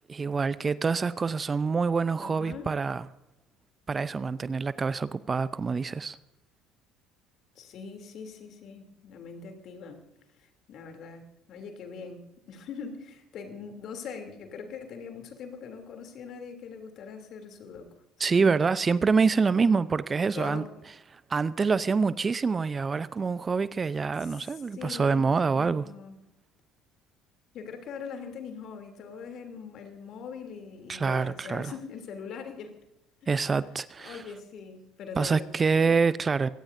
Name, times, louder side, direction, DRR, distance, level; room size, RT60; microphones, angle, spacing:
voice 1, 0.1-3.1 3.9-6.2 18.2-20.6 21.1-25.8 30.9-31.7 33.3-34.2 35.2-36.5, right 5 dB, 30° right, 0.7 m, -26 dB
voice 2, 2.2-2.7 7.5-10.0 10.4-11.2 11.5-17.9 18.2-18.5 20.3-20.7 24.2-26.1 27.5-32.7 34.0-36.0, left 6 dB, 55° left, 3.1 m, -42 dB
25.0 x 17.0 x 2.7 m
hypercardioid pair, 60°, 0 cm